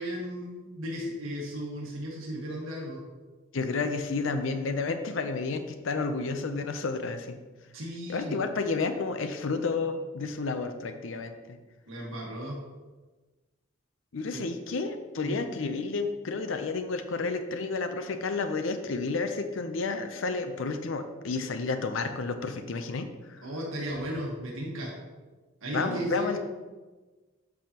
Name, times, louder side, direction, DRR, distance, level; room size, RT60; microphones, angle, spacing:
voice 1, 0.0-3.0 7.7-8.4 11.9-12.6 14.3-14.4 15.2-15.5 23.4-24.9 25.6-26.4, equal, 75° right, -3 dB, 1.4 m, -35 dB
voice 2, 3.5-7.4 8.1-11.6 14.1-23.4 25.7-26.4, left 4 dB, 70° left, 8 dB, 0.5 m, -31 dB
8.5 x 5.5 x 2.9 m, 1.3 s
head